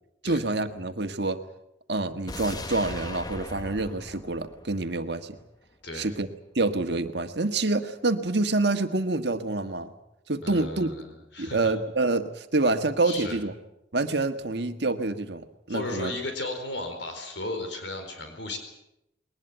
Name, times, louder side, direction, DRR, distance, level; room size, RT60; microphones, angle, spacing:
voice 1, 0.2-1.4 1.9-5.4 5.9-6.3 6.5-9.9 10.3-10.9 11.4-13.5 13.9-16.1, right 2 dB, 60° right, 8 dB, 1.6 m, -27 dB
sound 1, 2.3-5.4 5.7-5.8, left 2 dB, 20° left, 1.1 m, -39 dB
voice 2, 10.4-11.6 13.0-13.4 15.7-18.6, left 2 dB, 70° left, 5 dB, 4.5 m, -35 dB
21.5 x 19.5 x 8.9 m, 0.85 s
head